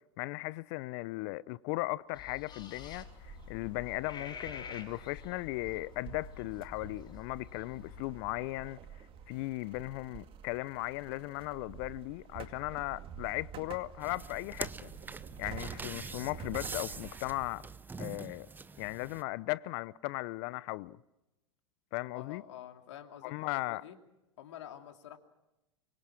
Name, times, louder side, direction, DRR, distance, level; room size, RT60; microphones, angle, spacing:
voice 1, 0.2-8.8 9.3-14.9 15.4-17.7 18.0-18.5 18.8-21.0 21.9-22.4 23.2-23.8, left 21 dB, 50° left, 0.7 m, -37 dB
sound 1, 2.1-8.3, left 6 dB, 25° left, 6.0 m, -49 dB
sound 2, 2.8-17.5, right 8 dB, 35° right, 2.2 m, -49 dB
sound 3, 14.0-19.2, right 4 dB, 10° right, 0.8 m, -44 dB
voice 2, 22.1-24.0 24.4-25.2, left 10 dB, 70° left, 2.7 m, -48 dB
25.0 x 24.0 x 6.2 m
hypercardioid pair, 95°, 16 cm